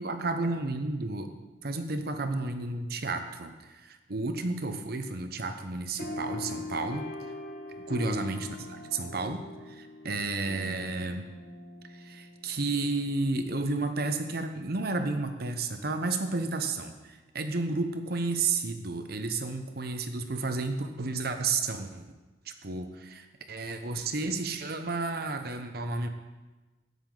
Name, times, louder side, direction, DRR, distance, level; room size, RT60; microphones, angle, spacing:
voice 1, 0.0-1.3 1.6-7.1 7.9-9.4 9.7-11.3 11.9-22.1 22.5-26.1, right 3 dB, 55° right, 7 dB, 0.9 m, -32 dB
sound 1, 6.0-12.9, left 2 dB, 55° left, 1.5 m, -41 dB
13.5 x 9.5 x 3.9 m, 1.2 s
head